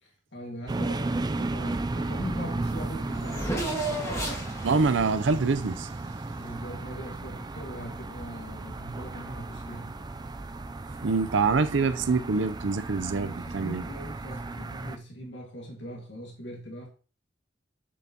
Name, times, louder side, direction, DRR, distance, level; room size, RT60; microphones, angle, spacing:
voice 1, 0.0-4.1 6.3-10.0 13.2-16.9, equal, 75° left, 1.9 m, -41 dB
sound 1, 0.7-15.0, right 2 dB, 20° right, 0.4 m, -35 dB
Race car auto racing / Accelerating revving vroom, 2.5-6.5, right 1 dB, 15° left, 1.6 m, -35 dB
voice 2, 4.6-5.9 11.0-13.8, right 4 dB, 80° right, 0.6 m, -25 dB
7.3 x 7.1 x 2.9 m
head